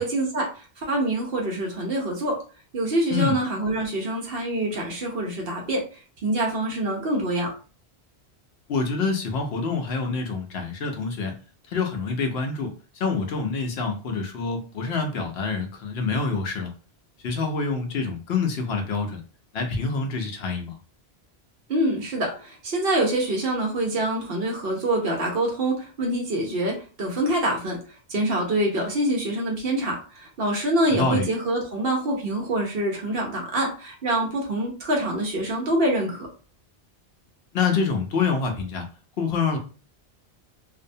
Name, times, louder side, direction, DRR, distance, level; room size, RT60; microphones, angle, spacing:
voice 1, 0.0-2.4 2.7-5.8 6.2-7.5 21.7-27.8 28.1-36.3, right 1 dB, 65° right, 0 dB, 1.0 m, -25 dB
voice 2, 8.7-11.3 11.7-16.7 17.2-19.2 19.5-20.8 30.9-31.3 37.5-38.9 39.2-39.6, left 4 dB, 75° left, 3 dB, 0.9 m, -26 dB
2.6 x 2.1 x 2.6 m, 0.36 s
omnidirectional pair, 1.1 m